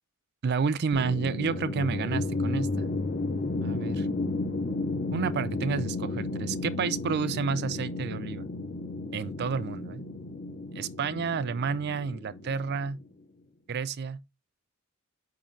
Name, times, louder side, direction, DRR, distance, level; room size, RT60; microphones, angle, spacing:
voice 1, 0.4-2.9 3.6-4.1 5.1-8.5 9.1-10.0 10.8-13.0 13.7-14.2, right 5 dB, 50° right, 0.4 m, -30 dB
sound 1, 0.9-13.1, left 2 dB, 35° left, 0.6 m, -33 dB
8.3 x 3.8 x 3.1 m
head